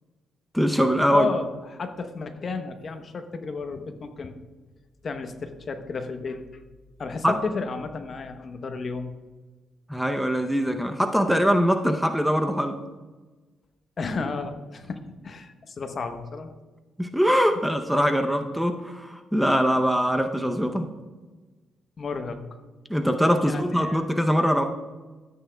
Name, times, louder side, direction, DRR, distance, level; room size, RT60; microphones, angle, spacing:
voice 1, 0.5-1.3 7.2-7.4 9.9-12.8 17.0-20.9 22.9-24.6, equal, ahead, 5 dB, 0.6 m, -22 dB
voice 2, 1.1-4.3 5.0-6.4 7.0-9.1 14.0-16.5 22.0-22.6 23.4-24.3, left 4 dB, 45° left, 8 dB, 0.8 m, -32 dB
13.5 x 8.5 x 2.2 m, 1.3 s
cardioid pair, 95°, 0 cm